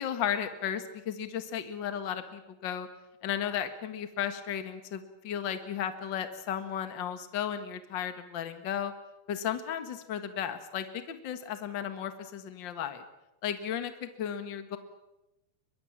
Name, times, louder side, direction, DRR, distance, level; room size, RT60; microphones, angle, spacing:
voice 1, 0.0-2.9 3.2-8.9 9.3-13.0 13.4-14.8, left 9 dB, 60° left, 9 dB, 1.2 m, -34 dB
23.0 x 22.0 x 7.3 m, 0.95 s
omnidirectional pair, 4.6 m